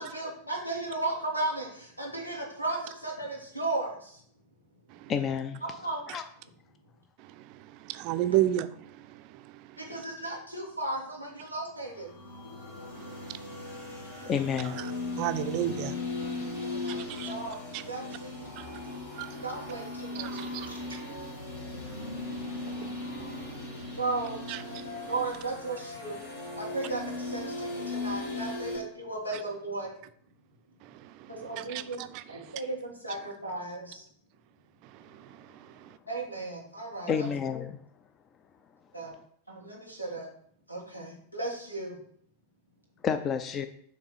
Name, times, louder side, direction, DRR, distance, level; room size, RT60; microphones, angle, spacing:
voice 1, 0.0-4.2 5.6-6.0 8.3-8.4 9.8-12.1 16.6-17.6 17.9-18.5 19.4-20.8 24.0-24.4 25.1-26.2 26.6-29.9 31.3-32.0 32.3-34.0 36.1-37.3 38.9-39.2 39.5-40.3 40.7-42.0, right 2 dB, 90° left, 1.9 m, -35 dB
voice 2, 5.1-5.6 6.1-6.2 14.3-14.8 37.1-37.8 43.0-43.7, left 7 dB, 30° left, 0.4 m, -29 dB
voice 3, 7.3-8.7 9.0-9.2 13.3-14.3 15.2-16.1 16.6-17.3 17.7-17.8 18.6-19.4 20.2-21.0 21.9-24.0 24.5-24.6 25.0-25.1 31.0-31.3 31.6-32.5 35.2-35.3 35.5-35.9, right 13 dB, 45° right, 0.4 m, -34 dB
sound 1, 11.9-28.8, left 3 dB, 55° left, 2.1 m, -38 dB
7.1 x 3.2 x 5.6 m
figure-of-eight pair, 90°, 0 cm